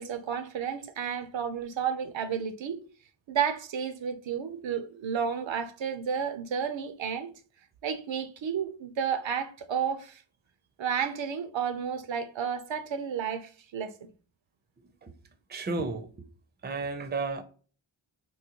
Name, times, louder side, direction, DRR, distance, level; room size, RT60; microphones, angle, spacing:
voice 1, 0.0-2.8 3.3-7.3 7.8-10.2 10.8-13.9, right 7 dB, 70° right, 0.5 m, -32 dB
voice 2, 15.5-16.1 16.6-17.4, right 3 dB, 20° right, 0.4 m, -32 dB
3.8 x 2.2 x 2.8 m
wide cardioid pair, 70°, 46 cm